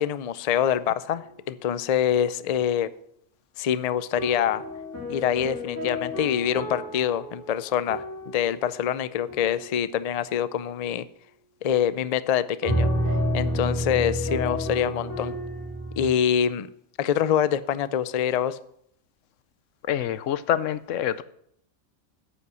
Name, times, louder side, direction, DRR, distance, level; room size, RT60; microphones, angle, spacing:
voice 1, 0.0-2.9 3.6-4.6 5.1-11.1 11.6-12.9 13.3-15.3 16.0-16.7 17.0-18.6, left 9 dB, 55° left, 15 dB, 0.4 m, -25 dB
sound 1, 4.2-8.6 9.3-9.7 12.6-16.1, equal, 15° left, 3.9 m, -30 dB
voice 2, 19.9-21.2, left 10 dB, 85° left, 15 dB, 1.0 m, -26 dB
9.8 x 8.4 x 6.1 m, 0.70 s
omnidirectional pair, 1.3 m